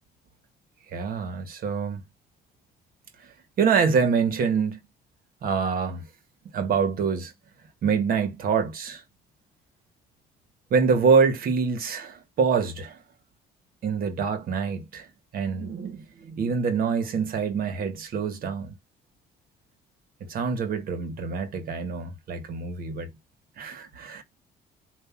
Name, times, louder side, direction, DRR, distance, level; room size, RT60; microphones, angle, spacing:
voice 1, 0.9-2.0 3.6-4.8 5.4-6.0 6.5-7.3 7.8-9.0 10.7-13.0 13.8-15.1 15.3-18.7 20.2-23.1 23.6-24.2, right 5 dB, 60° right, 1.6 m, -25 dB
7.9 x 2.8 x 5.9 m
cardioid pair, 110°, 17 cm